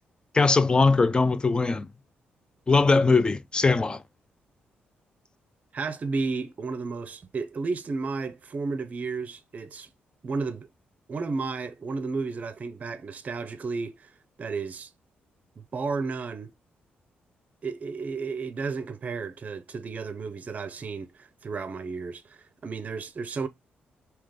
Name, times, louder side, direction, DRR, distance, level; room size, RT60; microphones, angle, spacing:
voice 1, 0.3-1.9 2.7-4.0, left 3 dB, 25° left, 0.4 m, -21 dB
voice 2, 5.7-9.9 10.2-10.7 11.1-14.1 14.4-14.9 15.6-16.5 17.6-23.5, right 4 dB, 40° right, 0.6 m, -33 dB
3.3 x 2.9 x 3.6 m
cardioid pair, 100°, 4 cm